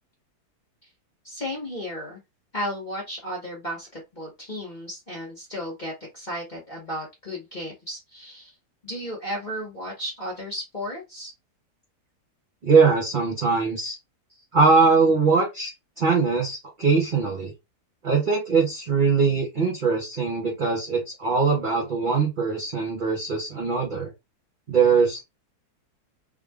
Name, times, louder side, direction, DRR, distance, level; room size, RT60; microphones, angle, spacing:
voice 1, 1.2-2.2 2.5-8.5 8.8-11.3, equal, 30° left, 1.3 m, -34 dB
voice 2, 12.6-14.0 14.5-15.7 16.0-17.5 18.0-24.1 24.7-25.2, right 4 dB, 35° right, 1.0 m, -21 dB
3.6 x 2.5 x 3.4 m
omnidirectional pair, 1.7 m